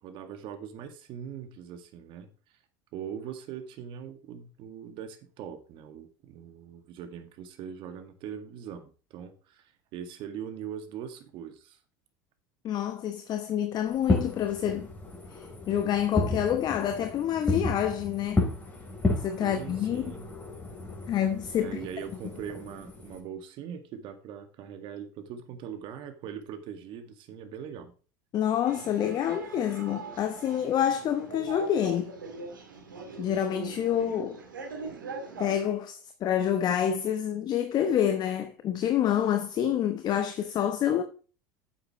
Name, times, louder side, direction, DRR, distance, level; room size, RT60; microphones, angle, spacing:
voice 1, 0.0-2.3 2.9-11.8 19.4-20.3 21.6-27.9, right 8 dB, 55° right, 2.0 m, -41 dB
voice 2, 12.6-14.9 15.3-18.4 19.2-20.1 21.1-21.8 28.3-32.1 33.2-34.4 35.4-41.0, left 10 dB, 40° left, 1.0 m, -27 dB
Fireworks, 13.9-23.2, left 2 dB, 15° left, 4.0 m, -32 dB
sound 1, 28.6-35.7, right 4 dB, 90° right, 2.0 m, -41 dB
9.4 x 8.0 x 3.2 m
hypercardioid pair, 80°, 10 cm